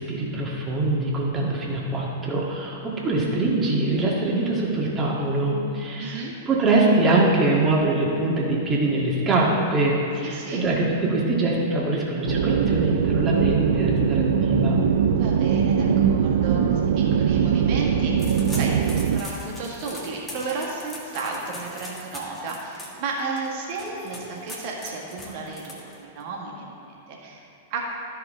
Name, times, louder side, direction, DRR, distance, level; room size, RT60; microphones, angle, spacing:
voice 1, 0.0-14.8, right 2 dB, 25° right, -3 dB, 1.8 m, -23 dB
voice 2, 6.0-6.3 10.2-10.6 15.2-27.9, right 3 dB, 50° right, -2 dB, 1.7 m, -33 dB
sound 1, 12.3-19.2, right 7 dB, 65° right, 0.4 m, -21 dB
sound 2, 18.2-26.2, left 1 dB, 15° left, 1.7 m, -41 dB
13.0 x 4.8 x 3.7 m, 2.9 s
figure-of-eight pair, 100°, 0 cm